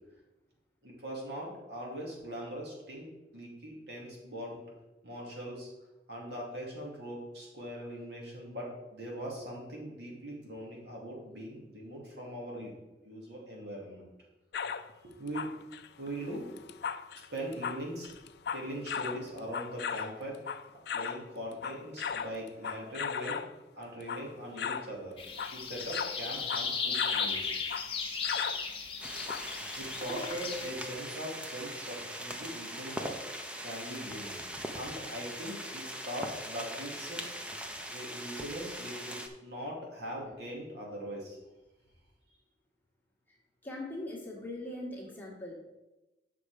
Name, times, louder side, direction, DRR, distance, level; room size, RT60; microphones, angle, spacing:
voice 1, 0.8-4.6 5.0-5.7 6.1-12.7 13.0-14.1 15.0-15.5 16.0-16.5 17.3-18.1 18.5-20.4 20.9-23.5 23.8-25.2 25.5-27.5 29.8-33.2 33.6-34.3 34.7-37.2 37.9-41.4, equal, 70° right, -2 dB, 2.6 m, -41 dB
sound 1, 14.5-14.9 15.3-21.2 21.5-23.5 24.0-24.3 24.6-24.9 25.3-27.4 27.7-27.9 28.2-28.6 29.3-29.7 30.1-30.2, left 6 dB, 60° left, 0.4 m, -37 dB
sound 2, 25.2-30.7, left 5 dB, 30° left, 1.1 m, -35 dB
sound 3, 29.0-39.3, equal, 5° right, 0.7 m, -41 dB
voice 2, 43.6-45.6, left 1 dB, 10° left, -3 dB, 1.7 m, -41 dB
8.2 x 5.9 x 5.0 m, 1.0 s
head